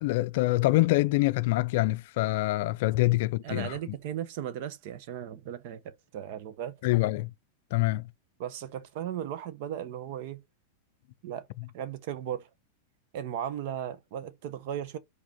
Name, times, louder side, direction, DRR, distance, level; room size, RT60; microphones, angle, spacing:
voice 1, 0.0-3.8 6.8-7.3 7.7-8.1, left 19 dB, 60° left, 0.4 m, -25 dB
voice 2, 3.4-6.8 8.4-10.4 11.2-11.5 11.7-12.5 13.1-15.0, right 10 dB, 55° right, 1.1 m, -36 dB
5.0 x 4.1 x 5.4 m
hypercardioid pair, 105°, 0 cm